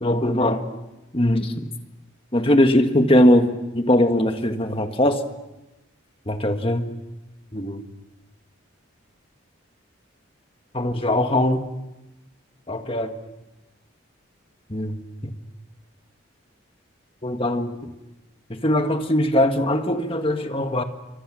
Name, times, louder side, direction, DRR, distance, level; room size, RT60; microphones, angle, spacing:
voice 1, 0.0-0.6 1.1-1.5 2.3-5.2 6.3-6.9 7.5-7.8 10.7-11.6 12.7-13.1 14.7-15.3 17.2-17.7 18.5-20.8, left 1 dB, 25° left, 1.6 m, -20 dB
28.5 x 24.5 x 6.3 m
head